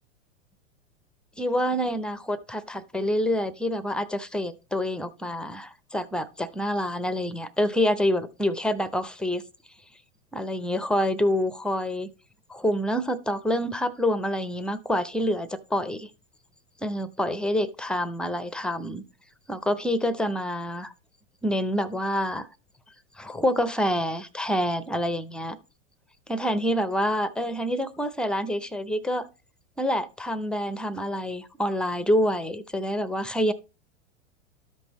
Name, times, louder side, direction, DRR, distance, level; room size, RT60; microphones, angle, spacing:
voice 1, 1.4-9.4 10.3-12.1 12.5-16.1 16.8-19.0 19.5-20.9 21.4-22.5 23.2-25.6 26.3-29.3 29.8-33.5, equal, ahead, 0.5 m, -27 dB
13.0 x 5.3 x 2.9 m
hypercardioid pair, 100°, 38 cm